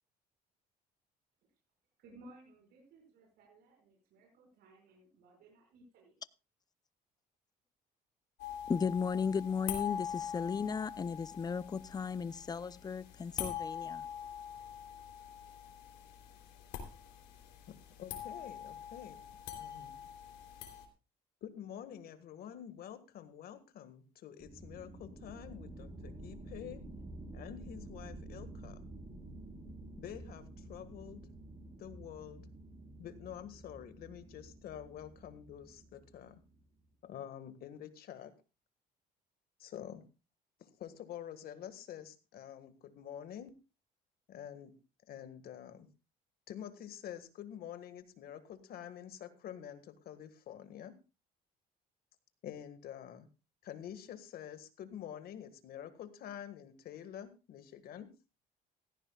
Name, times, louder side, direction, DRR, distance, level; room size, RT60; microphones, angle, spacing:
voice 1, 2.0-6.2, right 2 dB, 75° right, 5.5 m, -59 dB
sound 1, 8.4-20.9, left 9 dB, 85° left, 3.2 m, -44 dB
voice 2, 8.7-14.0, left 6 dB, 25° left, 0.6 m, -35 dB
voice 3, 17.7-19.2 19.6-20.0 21.4-26.8 27.3-28.9 30.0-31.2 31.8-32.5 33.0-36.4 37.0-38.3 39.6-40.0 40.6-43.5 44.3-44.7 45.1-45.9 46.5-51.0 52.4-53.3 53.6-58.1, left 10 dB, 65° left, 1.7 m, -48 dB
sound 2, 24.4-36.7, right 2 dB, 30° right, 6.8 m, -50 dB
17.0 x 14.5 x 2.4 m
cardioid pair, 110°, 17 cm